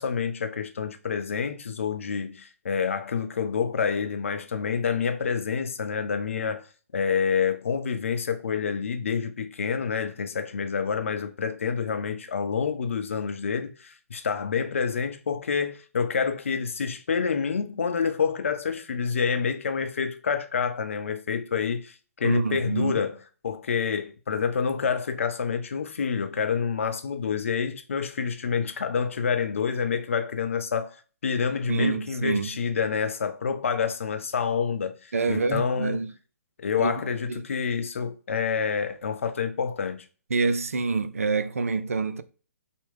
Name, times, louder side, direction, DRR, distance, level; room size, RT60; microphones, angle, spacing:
voice 1, 0.0-6.6 6.9-23.2 23.4-31.0 31.2-36.0 36.6-40.0, left 6 dB, 60° left, 0.6 m, -28 dB
voice 2, 22.2-23.0 31.7-32.5 35.1-36.1 36.8-36.9 37.3-37.4 40.3-42.2, right 4 dB, 65° right, 0.4 m, -26 dB
5.6 x 2.2 x 3.4 m
figure-of-eight pair, 130°, 8 cm